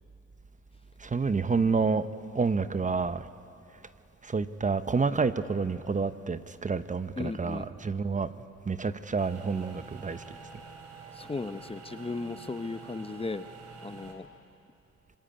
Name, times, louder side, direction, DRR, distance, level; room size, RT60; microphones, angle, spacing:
voice 1, 1.0-2.1 2.3-3.3 4.2-8.3 8.6-10.4, right 4 dB, 25° right, 0.9 m, -29 dB
voice 2, 7.2-7.7 11.1-13.4 13.8-14.3, left 3 dB, 20° left, 0.8 m, -36 dB
sound 1, 9.2-14.1, right 4 dB, 60° right, 4.0 m, -47 dB
25.5 x 22.5 x 9.7 m
cardioid pair, 90°, 30 cm